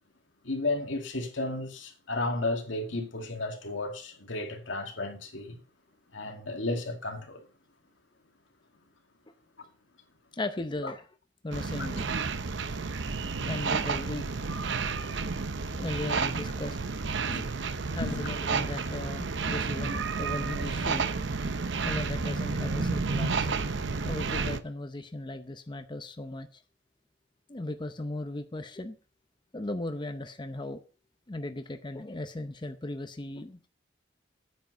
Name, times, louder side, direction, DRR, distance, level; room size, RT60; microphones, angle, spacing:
voice 1, 0.4-5.6 6.1-7.4 10.8-10.9 11.8-11.9 16.2-16.3 17.3-17.4 18.0-18.2, left 2 dB, 85° left, 2.3 m, -33 dB
voice 2, 10.3-11.1 11.4-12.1 13.4-14.2 15.7-16.8 17.9-21.1 21.8-23.6 24.0-26.6 27.5-29.0 29.5-30.8 31.3-33.6, left 2 dB, 25° left, 0.7 m, -37 dB
sound 1, 11.5-24.6, right 4 dB, 65° right, 0.8 m, -31 dB
9.3 x 7.4 x 5.4 m
head